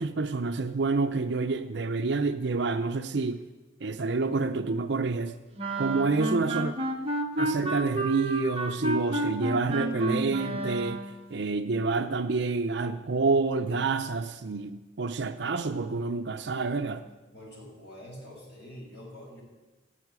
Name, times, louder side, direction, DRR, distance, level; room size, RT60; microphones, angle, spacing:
voice 1, 0.0-3.4 3.8-5.3 5.8-6.7 7.4-11.0 11.3-17.0, right 3 dB, 65° right, 8 dB, 0.6 m, -28 dB
sound 1, 5.6-11.2, right 1 dB, 30° right, 1.3 m, -31 dB
voice 2, 17.3-19.4, equal, 65° left, -4 dB, 7.0 m, -45 dB
16.5 x 8.3 x 9.6 m, 1.2 s
head